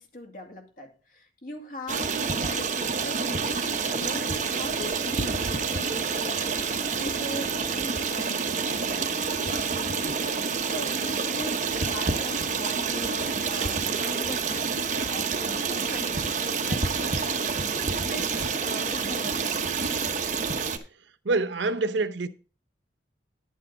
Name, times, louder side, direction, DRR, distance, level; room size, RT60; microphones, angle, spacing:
voice 1, 0.0-10.2 10.7-17.3 17.9-19.7, equal, 50° left, 2.3 m, -40 dB
Stream, 1.9-20.8, right 5 dB, 40° right, 1.0 m, -28 dB
voice 2, 21.2-22.3, right 3 dB, 80° right, 0.8 m, -26 dB
10.5 x 8.5 x 3.9 m
head